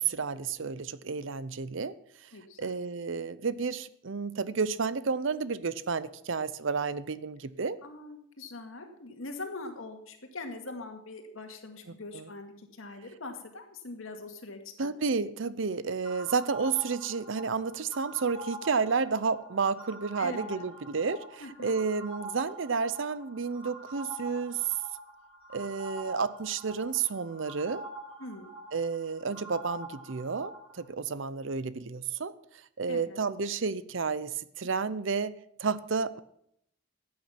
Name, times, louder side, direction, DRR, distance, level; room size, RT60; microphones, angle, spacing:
voice 1, 0.0-1.9 2.6-7.8 11.9-12.2 14.8-24.7 25.5-27.8 28.7-32.3 32.8-35.3 35.6-36.2, right 5 dB, 65° right, 17 dB, 0.6 m, -31 dB
voice 2, 2.3-2.7 7.8-14.9 20.2-20.6 21.4-21.8 28.2-28.6 32.9-33.2, left 2 dB, 80° left, 5 dB, 2.1 m, -42 dB
sound 1, 16.0-30.8, right 2 dB, 30° right, 5.0 m, -45 dB
14.5 x 8.9 x 5.9 m, 0.72 s
head